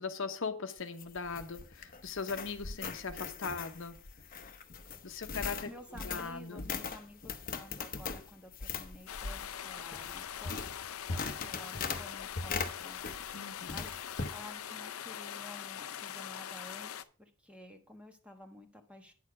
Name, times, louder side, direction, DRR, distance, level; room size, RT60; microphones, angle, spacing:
voice 1, 0.0-4.0 5.0-6.7 13.3-13.8, left 4 dB, 65° left, 0.9 m, -39 dB
sound 1, 0.8-13.4 13.7-14.4, left 4 dB, 40° left, 0.9 m, -40 dB
voice 2, 5.6-10.8 11.1-13.0 13.7-13.9 14.3-19.1, left 1 dB, 5° right, 1.2 m, -52 dB
sound 2, 9.1-17.0, left 9 dB, 90° left, 0.6 m, -42 dB
9.6 x 6.9 x 4.8 m
head